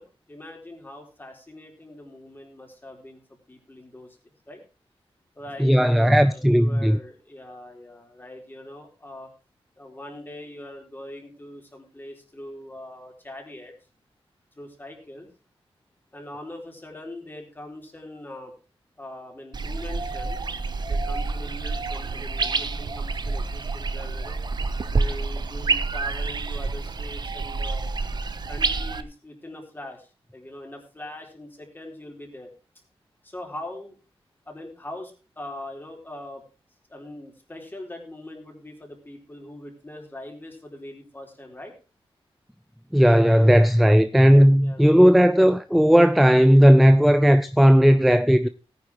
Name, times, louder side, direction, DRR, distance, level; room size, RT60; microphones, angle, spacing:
voice 1, 0.0-3.2 3.5-4.6 5.3-9.3 9.8-13.7 14.5-15.3 16.1-18.5 19.0-20.4 20.9-24.4 24.9-27.9 28.4-32.5 33.2-34.0 34.5-36.4 36.9-41.7 44.6-45.0, left 1 dB, 20° left, 3.9 m, -41 dB
voice 2, 5.6-7.0 42.9-48.5, equal, ahead, 0.5 m, -16 dB
sound 1, 19.5-29.0, right 4 dB, 45° right, 0.9 m, -28 dB
18.0 x 9.7 x 3.0 m
wide cardioid pair, 130°, 10 cm